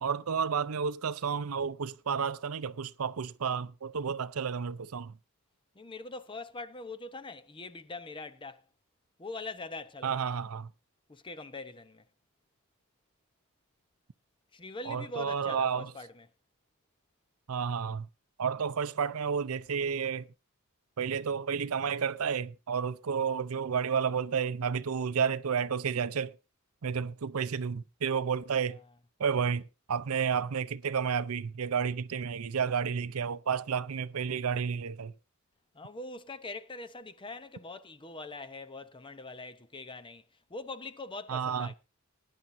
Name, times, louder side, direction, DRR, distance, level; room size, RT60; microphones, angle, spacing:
voice 1, 0.0-5.1 10.0-10.7 14.9-15.9 17.5-18.1 18.4-20.3 21.0-26.4 26.8-28.8 29.2-35.1 41.3-41.7, right 6 dB, 75° right, 0.6 m, -31 dB
voice 2, 5.7-8.6 9.2-10.4 11.1-12.0 14.5-16.3 28.7-28.8 35.7-40.2 40.5-41.7, left 3 dB, 25° left, 0.7 m, -43 dB
20.0 x 10.0 x 2.6 m
head